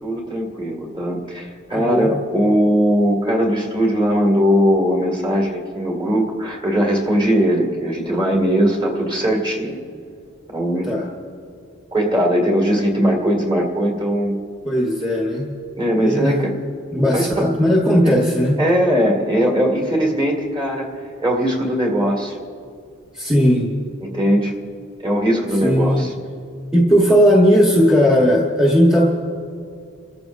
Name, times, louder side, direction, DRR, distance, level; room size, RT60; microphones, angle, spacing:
voice 1, 0.0-9.8 10.5-10.9 11.9-14.4 15.7-16.5 17.1-17.5 18.0-18.2 18.6-22.4 24.0-24.5 25.0-26.1, equal, 25° right, 0 dB, 2.1 m, -19 dB
voice 2, 1.7-2.1 10.9-11.1 14.6-15.5 15.9-16.4 16.9-18.6 23.1-23.7 25.6-26.1 26.7-29.0, equal, 5° right, -3 dB, 1.3 m, -16 dB
28.0 x 14.0 x 2.6 m, 2.4 s
head